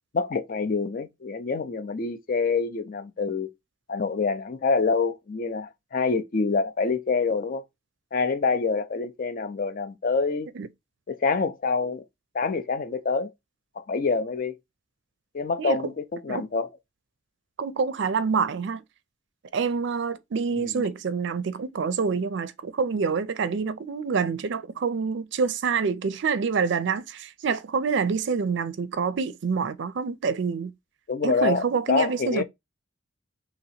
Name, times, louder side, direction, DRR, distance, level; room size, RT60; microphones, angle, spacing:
voice 1, 0.1-3.5 3.9-7.6 8.1-10.5 11.1-12.0 12.3-13.3 13.8-14.6 15.3-16.7 20.6-20.8 31.1-32.4, left 4 dB, 45° left, 0.5 m, -26 dB
voice 2, 17.6-18.8 19.5-30.7 31.2-32.4, right 5 dB, 65° right, 0.4 m, -27 dB
2.9 x 2.9 x 4.1 m
head